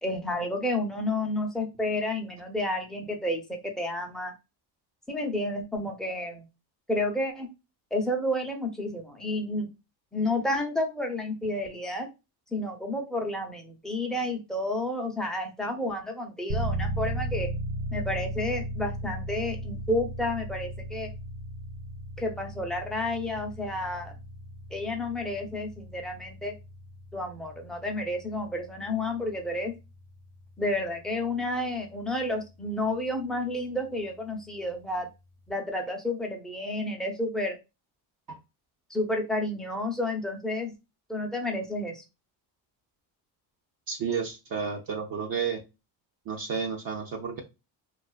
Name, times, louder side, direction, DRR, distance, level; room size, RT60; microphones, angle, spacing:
voice 1, 0.0-4.3 5.1-6.4 6.9-7.5 7.9-9.7 10.1-12.1 12.5-17.5 17.9-21.1 22.2-24.1 24.7-26.5 27.1-29.7 30.6-35.1 35.5-37.6 38.9-40.7 41.1-42.0, left 1 dB, ahead, 1 dB, 0.5 m, -30 dB
sound 1, 16.5-33.2, right 1 dB, 75° right, 1.2 m, -37 dB
voice 2, 43.9-45.6 46.3-47.4, right 6 dB, 50° right, 2 dB, 0.5 m, -31 dB
2.4 x 2.3 x 2.3 m, 0.26 s
cardioid pair, 90°, 48 cm